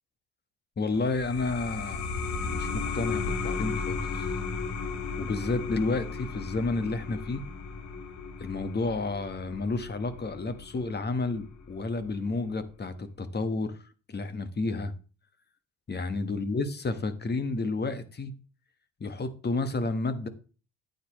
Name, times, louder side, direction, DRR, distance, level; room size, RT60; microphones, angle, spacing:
voice 1, 0.8-4.3 5.2-7.4 8.4-13.7 14.1-14.9 15.9-18.3 19.0-20.3, left 3 dB, 35° left, 1.3 m, -31 dB
sound 1, 0.9-12.1, left 4 dB, 70° left, 1.6 m, -35 dB
9.4 x 9.4 x 3.1 m
cardioid pair, 90°, 30 cm